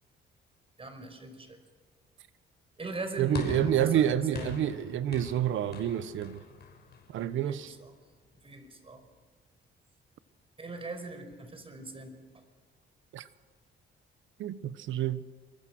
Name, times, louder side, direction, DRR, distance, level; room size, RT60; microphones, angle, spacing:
voice 1, 0.8-1.6 2.8-4.5 7.5-7.9 8.4-9.0 10.6-12.1, right 2 dB, 30° right, 5.3 m, -41 dB
voice 2, 3.2-6.4 7.1-7.7 13.1-13.3 14.4-15.2, right 11 dB, 80° right, 1.2 m, -28 dB
sound 1, 3.3-7.8, left 5 dB, 55° left, 6.1 m, -42 dB
27.0 x 23.0 x 6.3 m
cardioid pair, 90°, 20 cm